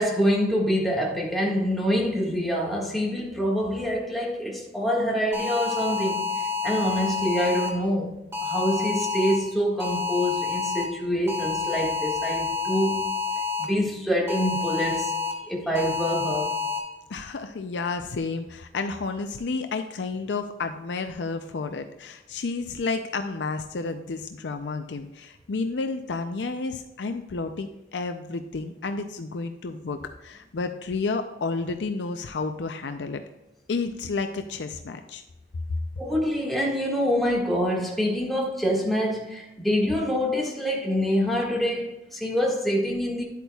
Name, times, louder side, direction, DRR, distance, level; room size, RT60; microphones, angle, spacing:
voice 1, 0.0-13.0 13.6-15.1 15.5-16.5 36.0-43.2, equal, ahead, 1.8 m, -26 dB
sound 1, 5.3-7.7 8.3-9.4 9.8-10.9 11.3-13.6 14.3-15.3 15.8-16.8, left 5 dB, 15° right, 1.7 m, -28 dB
voice 2, 17.1-33.2 33.7-35.2, left 4 dB, 80° left, 0.5 m, -31 dB
10.5 x 8.2 x 2.3 m
head